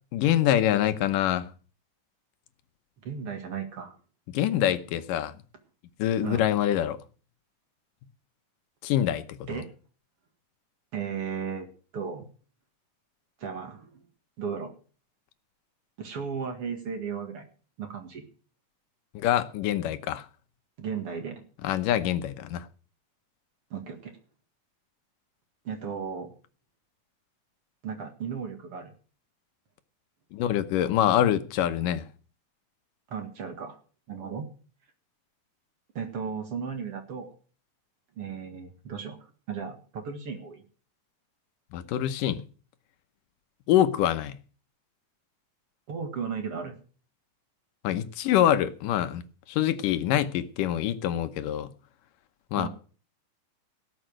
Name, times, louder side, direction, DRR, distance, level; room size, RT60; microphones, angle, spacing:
voice 1, 0.1-1.5 4.3-5.3 6.0-7.0 8.8-9.6 19.1-20.3 21.6-22.7 30.3-32.0 41.7-42.4 43.7-44.4 47.8-49.2 49.5-51.7 52.5-52.7, left 11 dB, 85° left, 2.6 m, -25 dB
voice 2, 3.0-4.0 6.2-6.5 9.5-9.7 10.9-11.7 11.9-12.3 13.4-14.0 14.4-14.7 16.0-17.5 17.8-18.2 20.8-21.4 23.7-24.1 25.6-26.3 27.8-28.9 33.1-33.8 34.1-34.5 35.9-37.3 38.2-39.2 39.5-40.6 45.9-46.8 52.6-52.7, right 6 dB, 50° right, 2.5 m, -35 dB
17.5 x 7.1 x 6.3 m
omnidirectional pair, 3.7 m